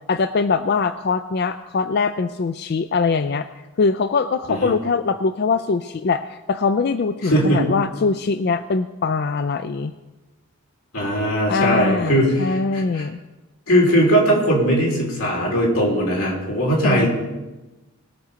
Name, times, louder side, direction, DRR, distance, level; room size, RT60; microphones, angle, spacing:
voice 1, 0.1-3.5 3.8-9.9 11.5-13.2 16.8-17.1, left 4 dB, 50° left, 10 dB, 0.4 m, -22 dB
voice 2, 7.2-7.7 10.9-13.0 13.7-17.1, equal, 90° left, -2 dB, 3.8 m, -19 dB
20.0 x 7.0 x 5.0 m, 1.1 s
head